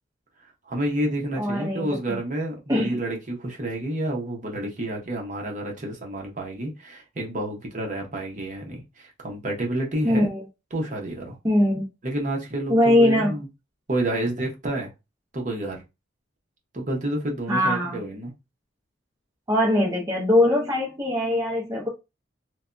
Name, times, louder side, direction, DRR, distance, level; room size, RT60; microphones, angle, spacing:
voice 1, 0.6-10.3 10.7-11.4 12.0-13.5 13.9-14.9 15.3-15.8 16.7-18.3, right 1 dB, 40° right, 0.8 m, -29 dB
voice 2, 1.4-2.2 2.7-3.0 10.0-10.4 11.4-11.9 12.7-13.3 17.5-18.0 19.5-21.9, left 1 dB, 15° right, 0.5 m, -21 dB
3.3 x 2.2 x 2.5 m
head